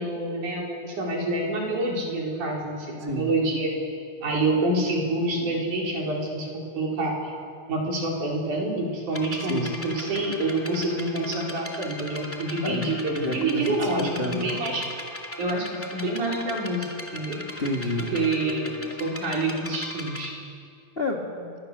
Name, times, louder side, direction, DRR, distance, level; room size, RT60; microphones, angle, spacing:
voice 1, 0.0-3.8 4.2-7.3 7.7-14.9 15.4-16.9 17.1-17.4 18.1-20.3, right 2 dB, 50° right, -2 dB, 5.5 m, -27 dB
sound 1, 9.1-20.3, left 1 dB, 15° left, 0.5 m, -39 dB
voice 2, 12.6-14.5 17.6-18.0 20.9-21.6, left 1 dB, 35° left, 0 dB, 0.9 m, -30 dB
26.5 x 21.5 x 6.8 m, 2.3 s
omnidirectional pair, 4.6 m